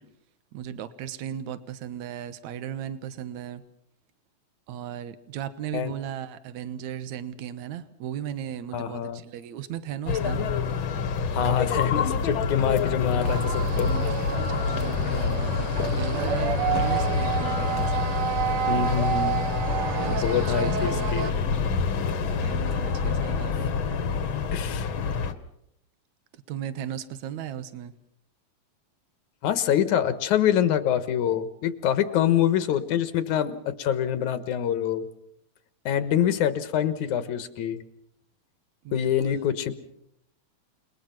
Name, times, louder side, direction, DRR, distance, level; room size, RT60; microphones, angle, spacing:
voice 1, 0.5-3.6 4.7-10.5 14.4-18.1 19.9-21.7 22.3-23.7 26.3-27.9 38.8-39.1, right 10 dB, 75° right, 12 dB, 2.5 m, -36 dB
voice 2, 8.7-9.2 11.3-13.9 15.1-15.2 18.7-19.5 20.1-21.3 24.5-24.9 29.4-35.1 35.9-37.8 38.9-39.7, left 9 dB, 85° left, 12 dB, 2.7 m, -25 dB
sound 1, 10.1-25.3, left 5 dB, 50° left, 1.7 m, -27 dB
sound 2, 13.2-21.3, right 9 dB, 55° right, 1.8 m, -30 dB
29.0 x 20.5 x 5.9 m, 0.74 s
omnidirectional pair, 3.4 m